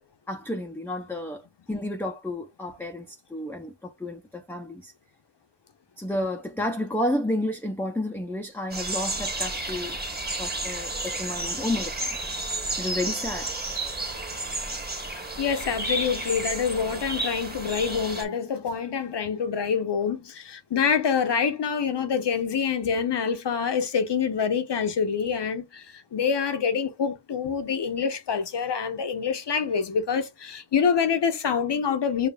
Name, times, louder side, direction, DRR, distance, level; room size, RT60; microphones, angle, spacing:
voice 1, 0.3-1.4 1.7-4.9 6.0-10.0 10.4-12.1 12.8-13.5, left 1 dB, 5° left, 0.4 m, -31 dB
sound 1, 8.7-18.2, right 2 dB, 20° right, 1.3 m, -32 dB
voice 2, 15.4-32.3, left 6 dB, 70° left, 0.8 m, -26 dB
7.0 x 2.4 x 2.2 m
wide cardioid pair, 100°, 42 cm